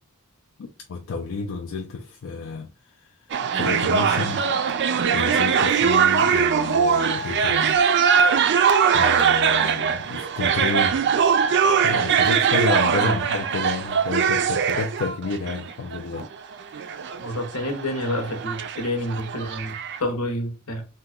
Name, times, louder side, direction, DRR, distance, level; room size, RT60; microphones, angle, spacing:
voice 1, 0.9-2.7 3.0-3.1 3.5-4.4 5.1-7.8 8.9-11.1 11.8-16.3 16.7-16.9, left 4 dB, 60° left, 0.4 m, -30 dB
sound 1, 3.3-20.0, right 7 dB, 55° right, 0.4 m, -21 dB
voice 2, 17.2-20.8, left 1 dB, 80° left, 0.9 m, -28 dB
2.8 x 2.3 x 3.5 m
head